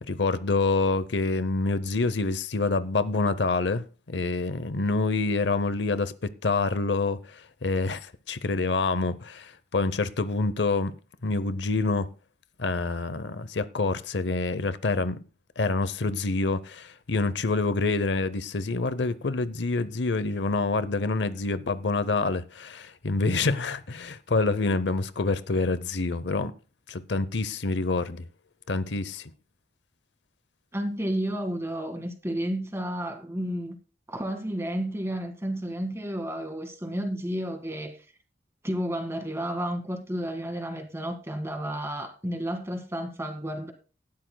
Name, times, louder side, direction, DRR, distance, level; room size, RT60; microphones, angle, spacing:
voice 1, 0.1-10.9 11.2-12.1 12.6-15.2 15.6-26.5 26.9-28.3 28.7-29.3, left 3 dB, 80° left, 0.8 m, -27 dB
voice 2, 30.7-33.8 34.1-38.0 38.6-43.7, equal, 15° right, 2.0 m, -31 dB
18.0 x 12.5 x 2.3 m
head